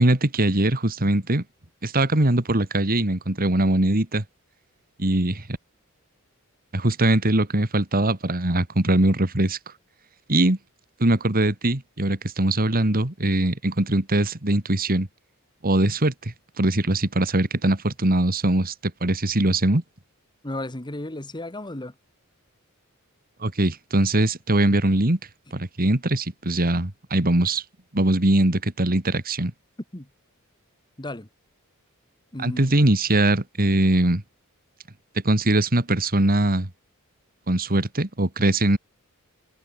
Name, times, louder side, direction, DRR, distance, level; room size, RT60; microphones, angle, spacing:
voice 1, 0.0-1.4 1.8-4.2 5.0-5.4 6.7-9.6 10.3-10.6 11.0-15.1 15.6-16.1 16.6-18.7 19.0-19.8 23.4-25.2 25.5-27.6 27.9-29.5 32.4-34.2 35.2-36.7 37.5-38.8, right 1 dB, 40° right, 2.4 m, -21 dB
voice 2, 20.4-21.9 29.9-30.1 31.0-31.3 32.3-32.6, left 1 dB, 20° left, 1.8 m, -33 dB
head